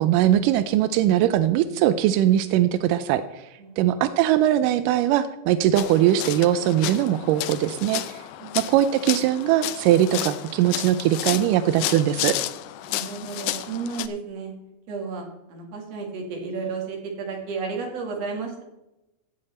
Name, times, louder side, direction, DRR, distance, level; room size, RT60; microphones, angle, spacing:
voice 1, 0.0-3.5 3.8-8.2 8.6-12.3, right 12 dB, 85° right, 12 dB, 2.2 m, -21 dB
voice 2, 3.6-4.0 8.4-8.5 12.9-14.5 14.9-18.6, right 4 dB, 55° right, 1 dB, 3.0 m, -33 dB
sound 1, 5.8-14.1, left 14 dB, 80° left, 1.9 m, -32 dB
16.0 x 6.6 x 4.3 m, 0.95 s
omnidirectional pair, 3.7 m